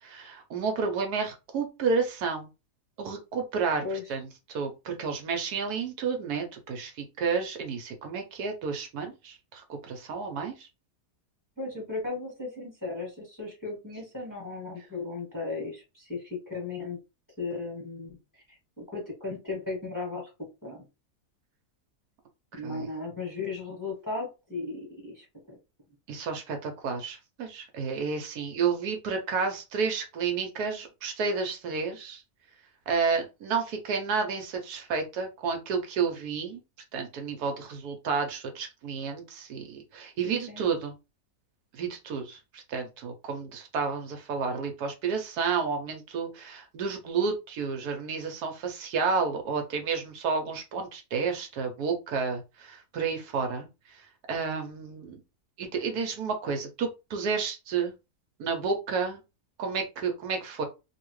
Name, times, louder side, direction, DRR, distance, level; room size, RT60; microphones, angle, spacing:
voice 1, 0.0-2.5 3.0-3.8 4.1-10.7 22.5-22.9 26.1-32.2 32.9-36.6 36.9-40.9 41.7-54.0 54.3-55.2 55.6-57.9 58.4-59.2 59.6-60.6, right 5 dB, 75° right, 4 dB, 1.2 m, -31 dB
voice 2, 11.6-17.0 17.4-18.2 18.8-20.2 20.6-20.8 22.5-25.2 40.2-40.6, left 3 dB, 15° left, -2 dB, 1.2 m, -36 dB
2.8 x 2.7 x 3.0 m, 0.27 s
omnidirectional pair, 1.7 m